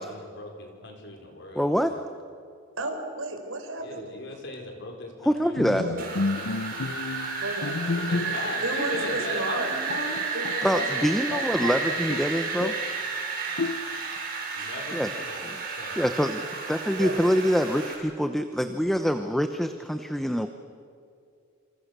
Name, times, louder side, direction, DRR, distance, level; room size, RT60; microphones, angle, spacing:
voice 1, 0.0-1.7 3.8-5.9 8.0-10.3 14.5-15.4 15.7-16.0, left 2 dB, 55° left, 2 dB, 5.1 m, -38 dB
voice 2, 1.5-1.9 5.2-5.9 10.6-12.7 14.9-15.1 15.4-15.6 15.9-16.4 16.7-20.5, equal, ahead, 7 dB, 0.8 m, -25 dB
voice 3, 2.8-4.1 5.8-6.5 7.3-7.8 8.2-8.3 8.6-9.7 10.3-11.9 13.5-13.6 16.4-16.5 17.0-17.2, right 2 dB, 75° right, 5 dB, 4.4 m, -34 dB
Bowed string instrument, 5.6-8.6 8.9-9.1 9.6-9.7 9.9-11.8 12.1-12.9 13.6-14.2, left 3 dB, 80° left, 0.8 m, -31 dB
Wind, 6.0-17.9, right 4 dB, 45° right, 6.7 m, -32 dB
27.5 x 26.5 x 6.8 m, 2.4 s
head